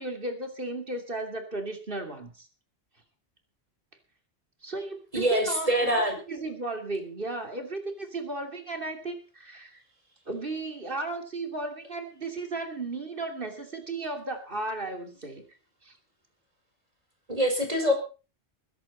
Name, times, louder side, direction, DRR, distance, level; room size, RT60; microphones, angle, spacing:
voice 1, 0.0-2.5 4.6-6.0 6.3-9.8 10.3-15.4 15.8-16.0, right 2 dB, 50° right, 4 dB, 3.0 m, -35 dB
voice 2, 5.1-6.2 17.3-17.9, equal, 35° right, 3 dB, 5.1 m, -24 dB
21.5 x 11.0 x 4.2 m, 0.35 s
omnidirectional pair, 1.1 m